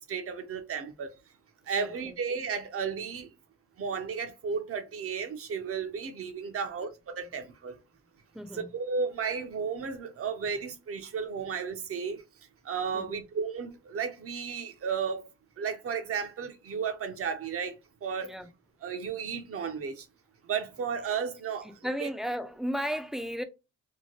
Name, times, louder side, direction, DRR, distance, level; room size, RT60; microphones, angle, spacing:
voice 1, 0.1-1.1 1.7-3.3 3.8-7.8 8.5-12.2 12.6-15.2 15.6-17.7 18.0-18.3 18.8-20.1 20.5-21.7 22.0-22.1, right 6 dB, 50° right, 0.7 m, -33 dB
voice 2, 1.8-2.2 8.3-8.7 12.9-13.3 18.2-18.5 21.6-23.4, equal, ahead, 0.4 m, -35 dB
2.8 x 2.1 x 2.9 m
cardioid pair, 90°, 30 cm